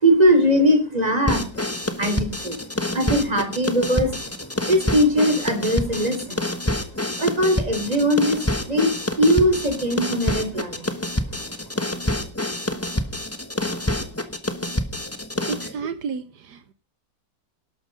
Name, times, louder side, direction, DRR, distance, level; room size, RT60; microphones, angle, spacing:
voice 1, 0.0-1.6 2.0-2.6 2.9-4.1 4.6-6.4 7.2-8.9 9.2-10.8, equal, 20° right, 7 dB, 3.3 m, -20 dB
sound 1, 1.3-15.7, left 1 dB, 10° left, 1.3 m, -27 dB
voice 2, 15.4-16.7, right 5 dB, 75° right, 12 dB, 1.6 m, -31 dB
12.5 x 12.0 x 5.2 m, 0.36 s
omnidirectional pair, 1.8 m